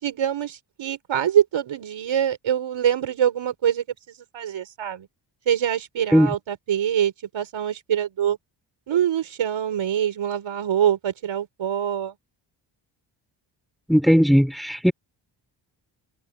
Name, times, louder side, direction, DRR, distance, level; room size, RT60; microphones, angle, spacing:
voice 1, 0.0-5.1 5.5-8.4 8.9-12.2, right 9 dB, 85° right, 5.9 m, -24 dB
voice 2, 13.9-14.9, equal, ahead, 3.9 m, -17 dB
cardioid pair, 80°, 46 cm